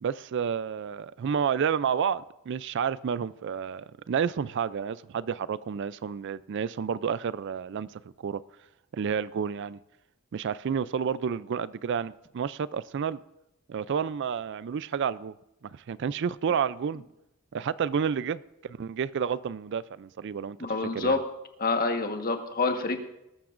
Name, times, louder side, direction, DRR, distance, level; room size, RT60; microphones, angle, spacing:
voice 1, 0.0-8.4 8.9-9.8 10.3-13.2 13.7-15.3 15.7-17.0 17.5-20.6 20.9-21.2, right 7 dB, 55° right, 0.4 m, -30 dB
voice 2, 20.6-21.2 21.6-23.0, left 3 dB, 40° left, 1.4 m, -27 dB
19.5 x 13.0 x 2.5 m
head